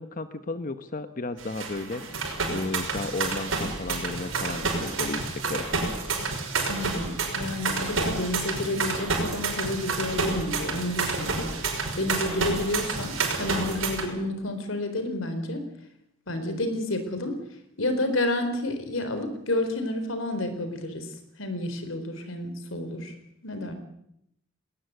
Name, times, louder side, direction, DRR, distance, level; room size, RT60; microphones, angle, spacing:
voice 1, 0.0-5.7, left 2 dB, 45° left, 10 dB, 1.0 m, -34 dB
sound 1, 1.4-14.1, right 3 dB, 90° right, 5.8 m, -29 dB
voice 2, 6.7-11.5 12.0-15.6 16.3-17.4 17.8-21.1 21.4-23.1 23.4-23.7, left 1 dB, 75° left, 9 dB, 4.2 m, -30 dB
20.0 x 19.5 x 8.2 m, 0.77 s
head